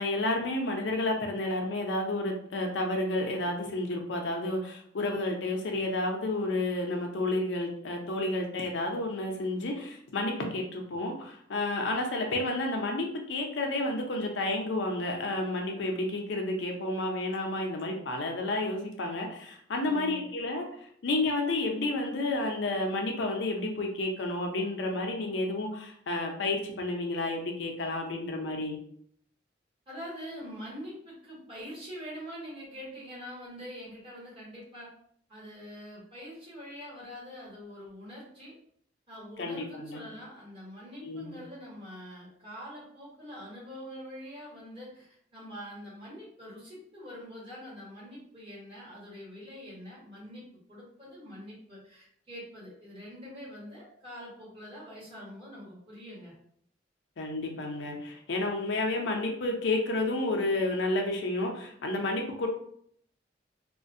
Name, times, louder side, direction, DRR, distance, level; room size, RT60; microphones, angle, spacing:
voice 1, 0.0-28.8 39.4-40.0 41.0-41.4 57.2-62.5, left 2 dB, 75° left, 2 dB, 0.5 m, -31 dB
voice 2, 19.8-20.3 29.9-34.9 35.3-38.5 39.1-50.4 50.7-56.3, equal, 30° right, -8 dB, 1.3 m, -44 dB
2.4 x 2.1 x 2.6 m, 0.65 s
head